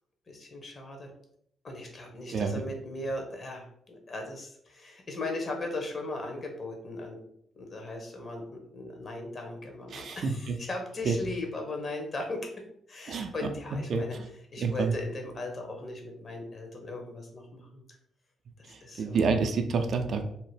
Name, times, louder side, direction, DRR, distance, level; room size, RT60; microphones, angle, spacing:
voice 1, 0.3-1.1 1.6-7.2 7.5-12.5 12.9-14.2 14.5-17.8 18.6-19.2, left 2 dB, 45° left, 2 dB, 0.9 m, -38 dB
voice 2, 2.3-2.6 9.9-10.6 11.1-11.2 13.1-13.3 13.9-14.2 14.6-15.0 18.7-20.2, right 4 dB, 60° right, 6 dB, 0.3 m, -28 dB
2.8 x 2.1 x 3.2 m, 0.71 s
hypercardioid pair, 45°, 0 cm